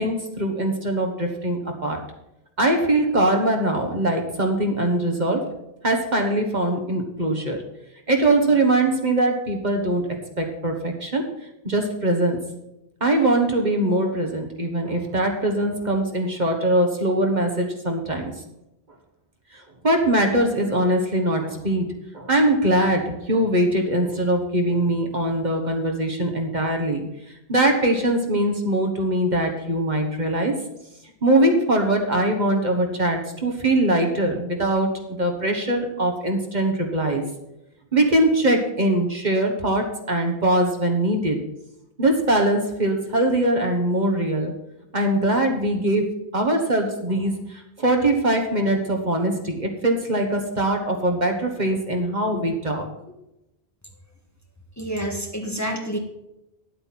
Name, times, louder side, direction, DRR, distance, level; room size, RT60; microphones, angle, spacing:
voice 1, 0.0-2.0 2.6-5.5 5.8-7.6 8.1-11.3 11.6-12.4 13.0-18.3 19.8-21.9 22.1-27.1 27.5-30.6 31.2-37.2 37.9-41.4 42.0-44.5 44.9-46.0 46.3-52.9, right 1 dB, 45° right, 3 dB, 1.5 m, -22 dB
voice 2, 54.8-56.0, right 1 dB, 15° left, 3 dB, 1.3 m, -28 dB
10.5 x 8.3 x 6.0 m, 0.89 s
omnidirectional pair, 1.0 m